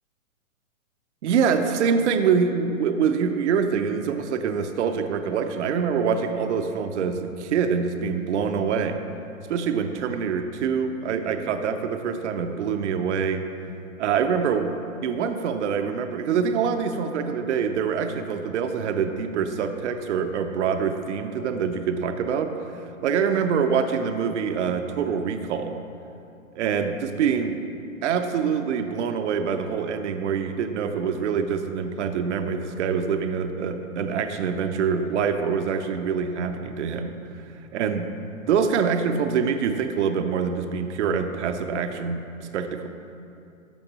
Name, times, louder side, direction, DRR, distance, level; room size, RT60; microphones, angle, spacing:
voice 1, 1.2-9.0 9.5-13.4 14.0-14.7 15.0-25.8 26.6-27.6 28.0-37.4 37.7-42.9, right 6 dB, 55° right, 7 dB, 0.7 m, -25 dB
12.0 x 7.0 x 2.9 m, 2.6 s
hypercardioid pair, 140°, 41 cm